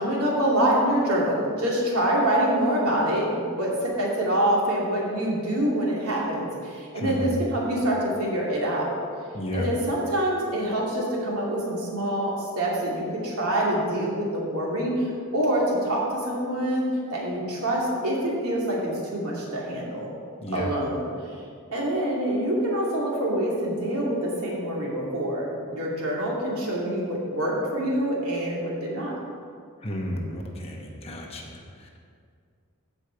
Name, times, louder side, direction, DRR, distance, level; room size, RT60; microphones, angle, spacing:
voice 1, 0.0-9.0 9.5-18.8 19.1-20.1 20.5-21.1 21.7-29.1, right 1 dB, 85° right, -4 dB, 2.5 m, -26 dB
voice 2, 6.9-7.4 9.3-9.6 20.4-20.7 29.8-32.0, equal, 25° left, 0 dB, 1.1 m, -33 dB
15.0 x 5.2 x 4.5 m, 2.2 s
head